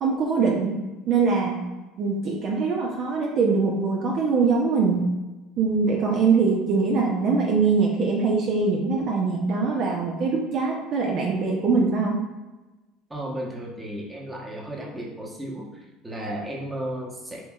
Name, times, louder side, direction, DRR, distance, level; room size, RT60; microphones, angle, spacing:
voice 1, 0.0-1.6 2.0-5.1 5.6-12.2, right 4 dB, 55° right, -1 dB, 0.6 m, -23 dB
voice 2, 13.1-15.7 16.0-17.4, right 1 dB, 15° right, -2 dB, 1.0 m, -34 dB
4.4 x 2.8 x 2.4 m, 1.1 s
hypercardioid pair, 80°, 0 cm